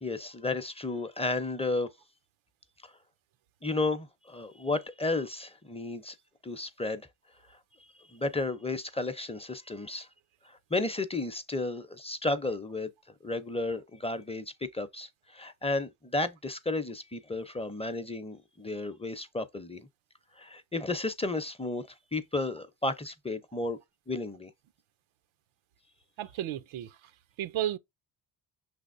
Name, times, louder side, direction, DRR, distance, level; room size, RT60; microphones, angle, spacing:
voice 1, 0.0-1.9 3.6-6.1 6.4-7.1 8.1-10.1 10.7-12.9 13.2-14.5 14.7-19.9 20.4-23.8 24.1-24.5, left 2 dB, 15° left, 0.6 m, -33 dB
voice 2, 26.2-27.0 27.4-27.8, right 12 dB, 80° right, 0.6 m, -32 dB
5.8 x 3.4 x 2.5 m
cardioid pair, 85°, 47 cm